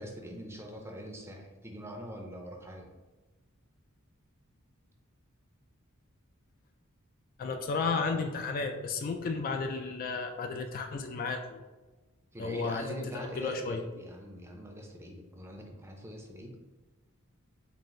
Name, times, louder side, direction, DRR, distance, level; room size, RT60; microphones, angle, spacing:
voice 1, 0.0-2.9 12.3-16.6, equal, 10° right, 1 dB, 0.5 m, -43 dB
voice 2, 7.4-11.6 12.4-12.9 13.4-13.8, left 4 dB, 40° left, 5 dB, 0.3 m, -33 dB
4.0 x 2.5 x 3.7 m, 1.2 s
head